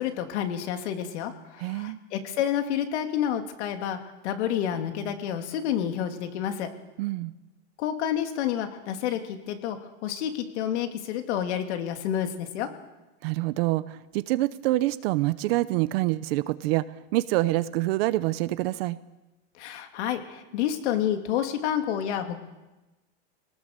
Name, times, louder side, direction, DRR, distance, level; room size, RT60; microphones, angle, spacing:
voice 1, 0.0-4.0 4.2-6.7 7.8-9.8 10.0-12.7 19.6-22.4, left 10 dB, 70° left, 6 dB, 2.8 m, -29 dB
voice 2, 1.6-2.0 7.0-7.3 13.2-16.8 17.1-19.0, right 18 dB, 55° right, 15 dB, 0.8 m, -26 dB
24.0 x 19.0 x 6.8 m, 1.1 s
supercardioid pair, 155°, 35 cm